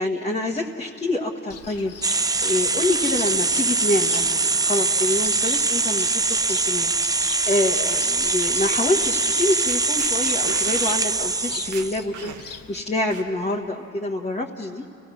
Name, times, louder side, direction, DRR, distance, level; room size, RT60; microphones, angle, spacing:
voice 1, 0.0-6.9 7.5-14.8, left 2 dB, 20° left, -2 dB, 1.4 m, -26 dB
Cricket, 1.5-12.8, left 6 dB, 50° left, 1.2 m, -41 dB
sound 1, 2.0-12.0, right 3 dB, 15° right, 0.4 m, -23 dB
sound 2, 7.8-8.0 9.3-9.4 9.6-10.1 10.4-11.0 11.4-11.5 11.7-12.6 13.1-13.6, right 7 dB, 75° right, 1.2 m, -38 dB
28.5 x 17.0 x 6.3 m, 2.8 s
cardioid pair, 90°, 30 cm